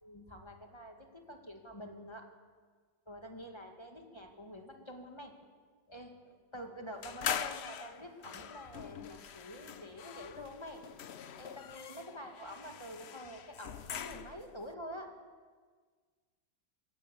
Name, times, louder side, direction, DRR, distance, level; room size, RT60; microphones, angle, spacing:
voice 1, 0.0-2.3 3.1-5.4 5.9-10.8 11.4-15.1, equal, 15° left, 3 dB, 2.1 m, -47 dB
sound 1, 7.0-14.5, left 8 dB, 90° left, 0.5 m, -42 dB
22.5 x 17.5 x 7.1 m, 1.5 s
omnidirectional pair, 2.1 m